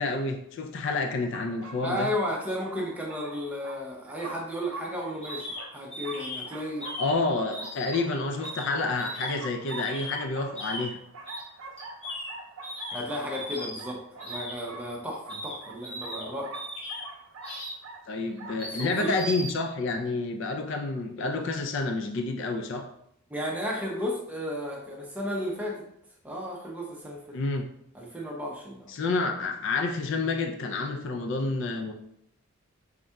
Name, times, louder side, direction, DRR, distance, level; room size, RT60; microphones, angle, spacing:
voice 1, 0.0-2.1 7.0-11.0 18.1-22.9 27.3-27.6 28.9-31.9, left 3 dB, 55° left, 5 dB, 0.3 m, -29 dB
sound 1, 1.3-19.2, right 3 dB, 65° right, 0.4 m, -45 dB
voice 2, 1.8-6.9 12.9-16.5 18.8-19.2 23.3-25.8 26.2-27.4 27.9-28.9, equal, 5° right, -3 dB, 0.6 m, -33 dB
sound 2, 5.2-5.6 5.9-6.4 6.8-7.1 7.5-8.1 8.4-8.7 9.0-9.4 9.7-10.2 10.5-10.9 11.3-11.4 11.8-12.3 12.6-13.0 13.3-13.8 14.2-14.5 15.3-15.5 15.8-16.2 16.5-17.0 17.4-17.7 18.6-18.8 19.1-19.5, equal, 25° left, 1.1 m, -37 dB
4.0 x 3.6 x 2.2 m, 0.75 s
head